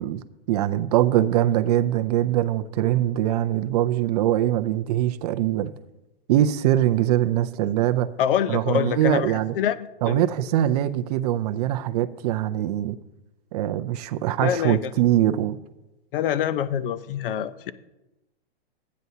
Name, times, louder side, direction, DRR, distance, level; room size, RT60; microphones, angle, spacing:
voice 1, 0.0-5.7 6.3-8.1 8.5-9.5 10.0-13.0 13.5-15.6, right 12 dB, 40° right, 11 dB, 0.5 m, -22 dB
voice 2, 8.2-10.3 14.4-14.9 16.1-17.7, left 9 dB, 60° left, 16 dB, 0.7 m, -25 dB
13.5 x 9.3 x 2.8 m, 0.97 s
hypercardioid pair, 150°, 31 cm